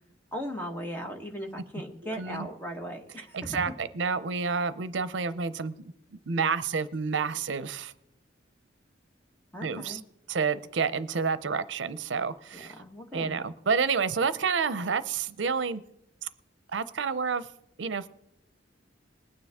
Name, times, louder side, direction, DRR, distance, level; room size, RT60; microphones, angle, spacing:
voice 1, 0.3-3.6 9.5-10.0 12.5-13.4, equal, 10° left, 1 dB, 1.4 m, -38 dB
voice 2, 2.0-2.5 3.3-7.9 9.6-10.0 10.3-12.7 13.1-15.8 16.2-16.3 16.7-17.5 17.8-18.1, right 5 dB, 80° right, 15 dB, 0.6 m, -29 dB
20.5 x 9.6 x 3.6 m, 0.78 s
head